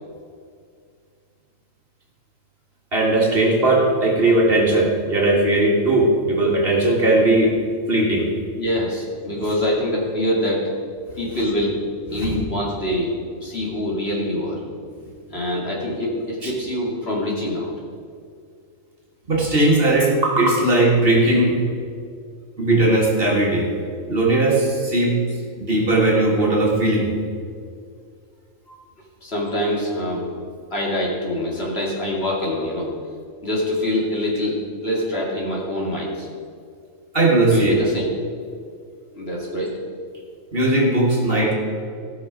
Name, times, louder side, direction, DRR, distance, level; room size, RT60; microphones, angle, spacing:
voice 1, 2.9-7.5 7.9-8.3 12.1-12.4 16.4-16.5 19.3-21.6 22.6-23.7 24.1-25.2 25.6-27.1 37.1-37.8 40.5-41.5, right 2 dB, 45° right, -2 dB, 1.9 m, -18 dB
voice 2, 8.6-10.7 11.2-11.8 12.1-13.1 13.4-14.6 15.3-17.7 28.7-28.8 29.2-30.2 30.7-32.9 33.4-36.3 37.5-38.1 39.1-39.8, left 1 dB, 50° left, -3 dB, 2.5 m, -24 dB
16.0 x 6.0 x 5.0 m, 2.2 s
omnidirectional pair, 1.4 m